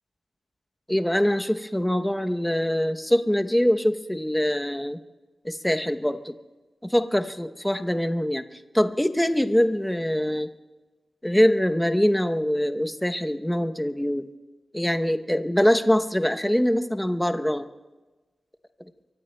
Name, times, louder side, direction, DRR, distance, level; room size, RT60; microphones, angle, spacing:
voice 1, 0.9-5.0 5.4-6.4 6.8-8.4 8.7-10.5 11.2-14.3 14.7-17.7, equal, 5° left, 8 dB, 0.7 m, -23 dB
24.5 x 24.0 x 2.2 m, 1.2 s
wide cardioid pair, 115°, 0 cm